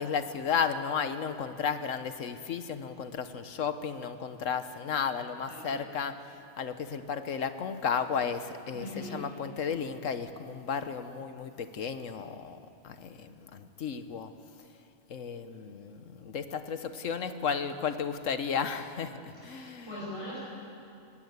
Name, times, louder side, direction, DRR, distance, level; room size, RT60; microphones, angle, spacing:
voice 1, 0.0-6.1 6.6-8.9 9.1-12.6 12.8-14.3 15.1-20.0, left 6 dB, 85° left, 10 dB, 1.4 m, -33 dB
voice 2, 5.4-5.9 8.7-9.3 19.3-20.4, left 1 dB, 20° left, -10 dB, 7.1 m, -41 dB
20.0 x 17.5 x 8.1 m, 2.6 s
omnidirectional pair, 1.3 m